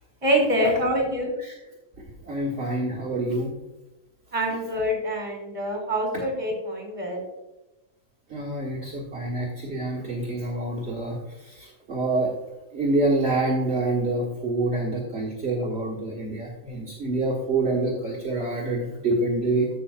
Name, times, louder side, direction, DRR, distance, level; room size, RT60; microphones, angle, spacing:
voice 1, 0.2-1.3 4.3-7.2, equal, 20° right, -2 dB, 3.1 m, -25 dB
voice 2, 2.2-3.5 8.3-12.3 12.7-19.7, right 2 dB, 45° right, -5 dB, 1.8 m, -27 dB
14.0 x 6.2 x 2.5 m, 0.99 s
omnidirectional pair, 1.5 m